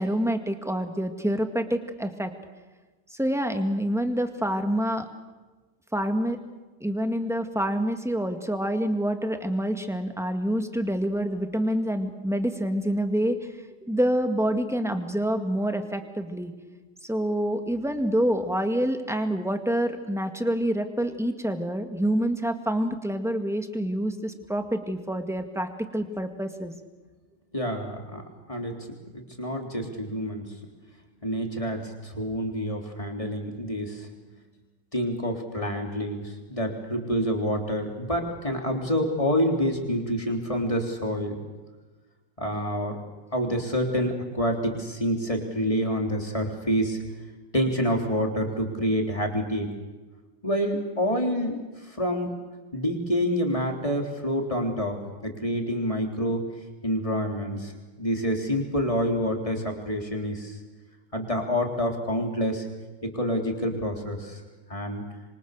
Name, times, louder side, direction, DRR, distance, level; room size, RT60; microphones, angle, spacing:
voice 1, 0.0-2.3 3.1-5.1 5.9-6.4 6.8-13.4 13.8-16.5 17.0-26.7, equal, ahead, 6 dB, 1.8 m, -27 dB
voice 2, 27.5-28.2 28.5-28.7 29.1-30.4 31.2-34.1 34.9-41.4 42.4-43.0 43.3-47.0 47.5-49.7 50.4-52.3 52.7-55.0 55.2-56.5 56.8-57.7 58.0-60.6 61.1-62.7 63.0-64.4 64.7-65.0, equal, 15° left, 2 dB, 3.7 m, -27 dB
27.0 x 24.5 x 6.7 m, 1.2 s
omnidirectional pair, 2.3 m